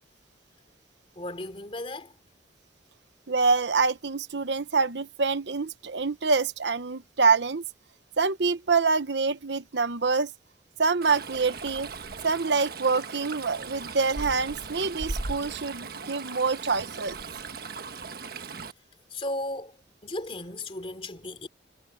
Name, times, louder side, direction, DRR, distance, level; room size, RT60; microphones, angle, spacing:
voice 1, 1.2-2.1 19.1-19.8 20.0-21.5, left 1 dB, 30° left, 3.0 m, -35 dB
voice 2, 3.3-7.6 8.2-10.3 10.8-11.9 12.2-17.2, right 4 dB, 70° right, 1.0 m, -26 dB
Stream, 11.0-18.7, right 4 dB, 55° right, 1.4 m, -38 dB
head